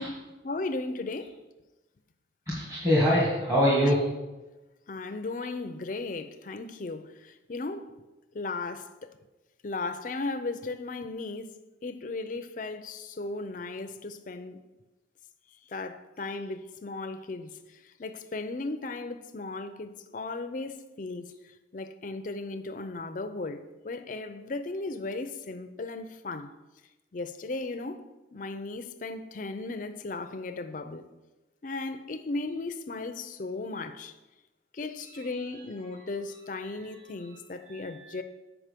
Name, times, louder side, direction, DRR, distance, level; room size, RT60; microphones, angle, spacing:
voice 1, 0.0-1.4 4.9-7.9 8.3-9.2 9.6-14.6 15.7-26.5 27.1-28.0 28.3-31.0 31.6-34.1 34.7-38.2, left 3 dB, 45° left, 0.4 m, -36 dB
voice 2, 2.5-4.0 35.1-35.2 37.7-38.1, equal, 15° right, 1.6 m, -25 dB
7.4 x 4.9 x 5.1 m
head